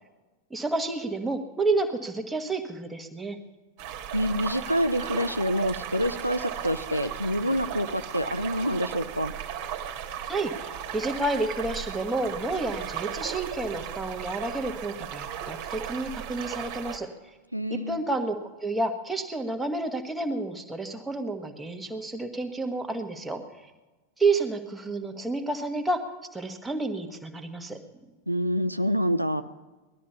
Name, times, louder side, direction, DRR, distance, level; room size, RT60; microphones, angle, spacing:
voice 1, 0.5-3.4 10.3-17.1 17.7-23.4 24.2-26.1 26.3-27.8, right 2 dB, 5° right, 4 dB, 1.5 m, -30 dB
sound 1, 3.8-17.0, right 9 dB, 45° right, 1.6 m, -36 dB
voice 2, 4.1-9.3 17.5-18.0 28.3-29.4, equal, 90° right, 10 dB, 0.5 m, -27 dB
19.0 x 12.5 x 5.6 m, 1.2 s
figure-of-eight pair, 90°, 0 cm